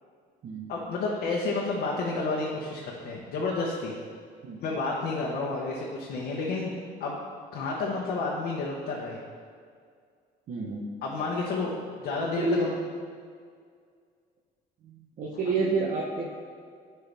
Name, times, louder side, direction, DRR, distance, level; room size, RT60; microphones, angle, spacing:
voice 1, 0.7-3.9 4.6-6.7 7.0-7.2 7.5-9.2 11.0-12.8, left 3 dB, 70° left, -3 dB, 1.1 m, -30 dB
voice 2, 10.5-10.9 12.2-12.7 14.8-16.3, right 3 dB, 50° right, -3 dB, 1.0 m, -29 dB
11.0 x 4.6 x 3.5 m, 2.1 s
cardioid pair, 110°, 17 cm